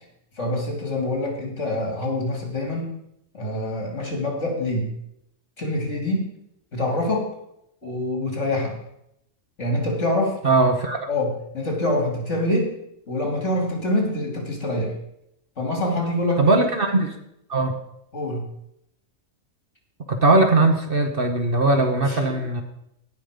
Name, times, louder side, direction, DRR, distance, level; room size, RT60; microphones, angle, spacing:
voice 1, 0.4-3.0 3.3-4.9 5.6-6.3 6.7-7.3 7.8-8.7 9.6-10.4 11.1-12.7 13.1-14.9 15.6-16.6 18.1-18.4, left 1 dB, 55° left, 1 dB, 3.2 m, -25 dB
voice 2, 10.4-11.1 16.4-17.2 17.5-17.7 20.1-22.6, right 2 dB, 45° right, 5 dB, 1.2 m, -19 dB
17.0 x 5.9 x 5.1 m, 0.78 s
omnidirectional pair, 1.4 m